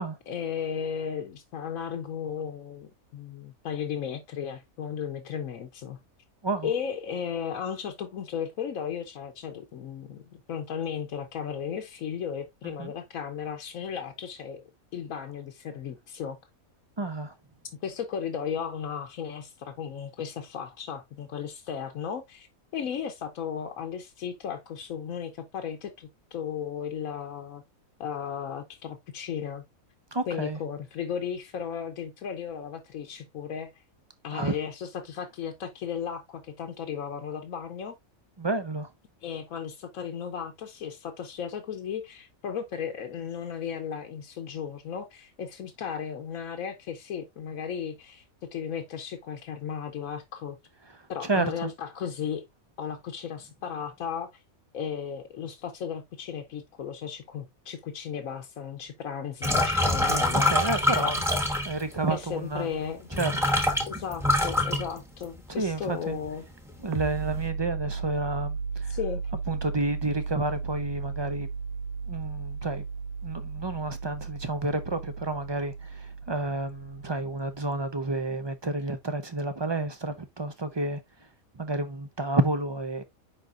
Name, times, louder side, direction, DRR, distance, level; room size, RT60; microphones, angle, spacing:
voice 1, 0.3-6.0 6.6-16.4 17.8-22.5 22.7-27.6 28.0-29.6 30.3-33.8 34.2-37.9 39.2-48.2 48.5-50.6 51.1-52.5 52.8-54.4 54.7-60.5 61.0-61.1 62.1-63.1 63.9-66.5 68.9-69.2, left 7 dB, 70° left, 1.2 m, -35 dB
voice 2, 17.0-17.3 30.1-30.6 34.3-34.6 38.4-38.9 50.9-51.7 60.5-61.2 61.6-62.7 63.2-63.4 65.5-66.2 66.8-69.0 69.5-71.5 72.1-72.8 73.2-81.3 81.5-83.0, right 2 dB, 30° right, 0.4 m, -30 dB
sound 1, 59.4-62.0 62.8-62.9 63.1-65.5 65.9-66.3 66.7-67.4, left 1 dB, ahead, 1.1 m, -25 dB
sound 2, 66.9-78.3, right 5 dB, 90° right, 1.2 m, -35 dB
9.8 x 3.9 x 2.4 m
omnidirectional pair, 1.5 m